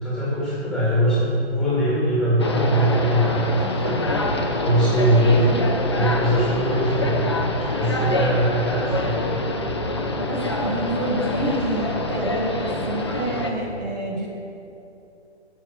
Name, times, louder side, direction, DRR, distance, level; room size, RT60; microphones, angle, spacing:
voice 1, 0.0-4.0 4.6-5.5 5.9-7.3 7.5-9.1, right 1 dB, 5° left, -9 dB, 2.1 m, -21 dB
sound 1, 2.4-13.5, left 2 dB, 25° left, 0.4 m, -25 dB
voice 2, 5.4-5.7 10.1-14.3, right 1 dB, 40° right, -4 dB, 1.3 m, -28 dB
6.8 x 6.3 x 7.6 m, 2.8 s
hypercardioid pair, 165°, 34 cm